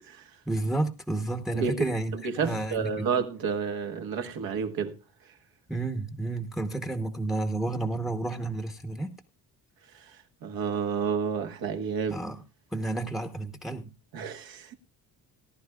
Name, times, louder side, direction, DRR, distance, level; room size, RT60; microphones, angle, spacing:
voice 1, 0.5-3.1 5.7-9.1 12.1-12.4 12.7-13.9, right 2 dB, ahead, 0.9 m, -31 dB
voice 2, 1.5-5.0 10.4-12.2 14.1-14.7, right 6 dB, 70° right, 1.6 m, -30 dB
18.0 x 11.0 x 2.4 m
cardioid pair, 130°, 36 cm